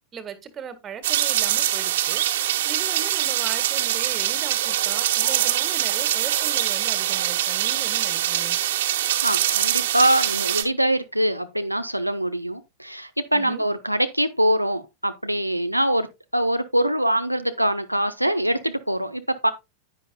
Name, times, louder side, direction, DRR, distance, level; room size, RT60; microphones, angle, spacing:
voice 1, 0.1-2.2 2.6-8.6 13.3-13.6, right 6 dB, 25° right, 1.7 m, -38 dB
sound 1, 1.0-10.6, right 12 dB, 55° right, 1.5 m, -23 dB
voice 2, 9.2-16.1 16.3-19.5, right 1 dB, 90° right, 0.7 m, -23 dB
10.5 x 9.9 x 2.2 m
figure-of-eight pair, 90°, 0 cm